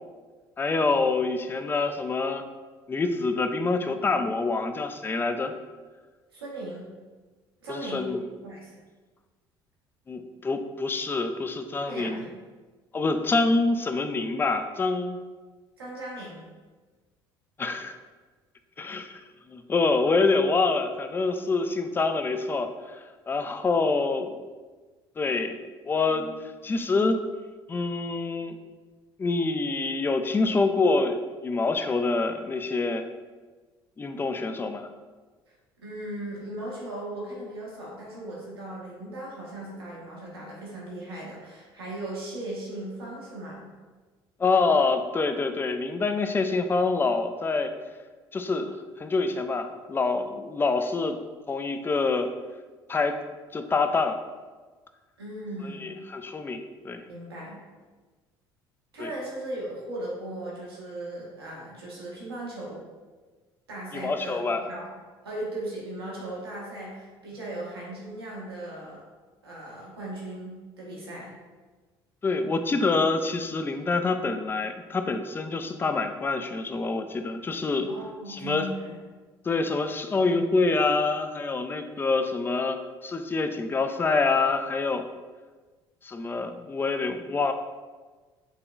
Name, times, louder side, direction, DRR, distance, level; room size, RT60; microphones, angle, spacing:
voice 1, 0.6-2.4 2.9-5.5 7.7-8.2 10.1-12.2 12.9-15.2 17.6-18.0 18.8-24.3 25.2-25.6 25.9-27.2 27.7-28.6 29.2-31.2 31.4-33.0 34.0-34.9 44.4-47.7 48.3-51.2 51.5-52.3 52.9-53.2 53.5-54.2 55.6-57.0 59.0-59.1 63.9-64.6 72.2-77.9 78.3-78.7 79.4-85.0 86.0-87.5, left 3 dB, 15° left, 8 dB, 0.4 m, -26 dB
voice 2, 6.3-6.8 7.6-8.1 8.4-8.8 11.9-12.4 15.8-16.4 35.5-43.7 55.2-56.0 57.1-57.6 58.9-62.8 63.7-64.9 65.2-69.1 69.4-71.3 77.9-79.0, right 1 dB, 80° right, -5 dB, 1.1 m, -37 dB
5.6 x 3.7 x 2.3 m, 1.3 s
figure-of-eight pair, 55°, 13 cm